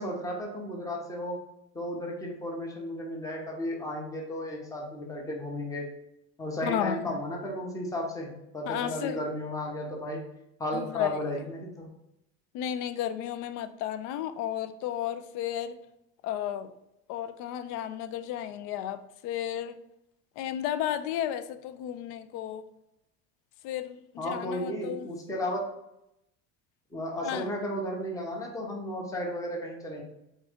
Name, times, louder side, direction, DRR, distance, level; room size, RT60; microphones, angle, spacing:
voice 1, 0.0-1.4 1.7-5.9 6.4-10.2 10.6-11.9 24.2-25.7 26.9-30.0, equal, 10° left, -1 dB, 0.7 m, -34 dB
voice 2, 6.6-7.2 8.7-9.2 10.7-11.1 12.5-15.8 16.2-16.7 17.1-19.8 20.4-22.7 23.6-25.1 27.2-27.5, left 11 dB, 60° left, 12 dB, 0.5 m, -33 dB
3.7 x 3.7 x 3.5 m, 0.85 s
cardioid pair, 160°, 35 cm